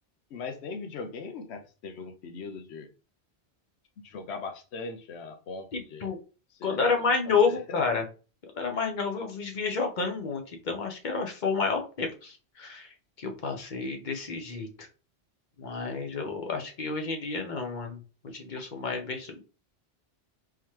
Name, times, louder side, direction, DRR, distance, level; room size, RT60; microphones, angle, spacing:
voice 1, 0.3-2.9 4.0-6.1 6.5-7.6, left 4 dB, 85° left, 7 dB, 0.9 m, -40 dB
voice 2, 5.7-6.2 6.6-8.0 8.5-14.9 15.6-18.0 18.2-19.4, left 4 dB, 50° left, 3 dB, 0.9 m, -30 dB
3.8 x 2.8 x 3.1 m, 0.34 s
omnidirectional pair, 1.1 m